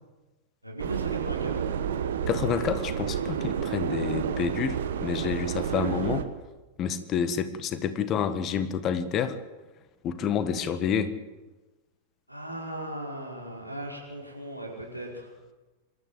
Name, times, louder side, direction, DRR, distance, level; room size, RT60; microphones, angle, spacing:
voice 1, 0.6-1.6 12.3-15.3, right 1 dB, 90° right, -2 dB, 5.2 m, -38 dB
Subway metro underground, 0.8-6.2, right 8 dB, 60° right, 1.5 m, -30 dB
voice 2, 2.3-6.2 6.8-9.4 10.0-11.1, left 7 dB, 35° left, 12 dB, 1.6 m, -28 dB
26.0 x 13.0 x 7.8 m, 1.2 s
figure-of-eight pair, 90°, 0 cm